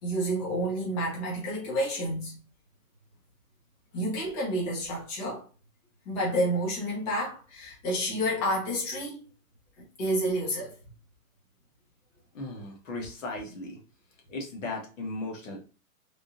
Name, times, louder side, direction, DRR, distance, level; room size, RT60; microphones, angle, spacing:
voice 1, 0.0-2.4 3.9-5.4 6.0-9.2 10.0-10.7, equal, 25° left, 1.2 m, -29 dB
voice 2, 12.3-13.8 14.3-15.6, left 2 dB, 60° left, 1.2 m, -36 dB
3.6 x 2.7 x 2.5 m
hypercardioid pair, 160°, 44 cm